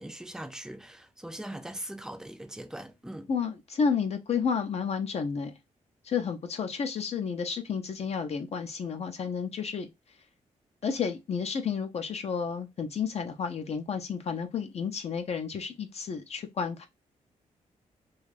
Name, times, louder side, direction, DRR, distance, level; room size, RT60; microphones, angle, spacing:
voice 1, 0.0-3.3, right 1 dB, 5° right, 0.5 m, -41 dB
voice 2, 3.3-5.6 6.0-9.9 10.8-16.9, left 6 dB, 50° left, 0.5 m, -31 dB
2.4 x 2.3 x 3.2 m
cardioid pair, 70°, 14 cm